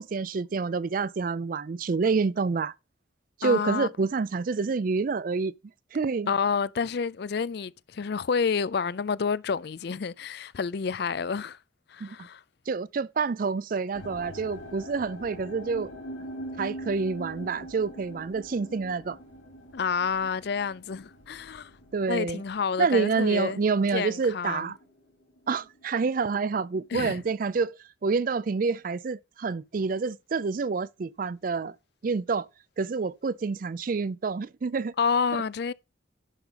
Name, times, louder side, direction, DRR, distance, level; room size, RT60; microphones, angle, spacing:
voice 1, 0.0-2.7 3.4-5.5 5.9-6.3 12.0-12.2 12.7-15.9 16.6-19.2 21.9-22.4 22.8-24.8 25.5-31.8 32.0-32.5 32.8-34.9, right 4 dB, 45° right, 0.4 m, -28 dB
voice 2, 3.4-3.9 6.3-11.6 11.9-12.4 19.7-21.7 22.1-23.6 23.9-24.7 26.9-27.2 35.0-35.7, left 6 dB, 55° left, 0.4 m, -29 dB
sound 1, 13.9-25.1 25.4-26.0 26.6-26.7, equal, 85° left, 3.2 m, -43 dB
10.5 x 5.1 x 5.0 m
head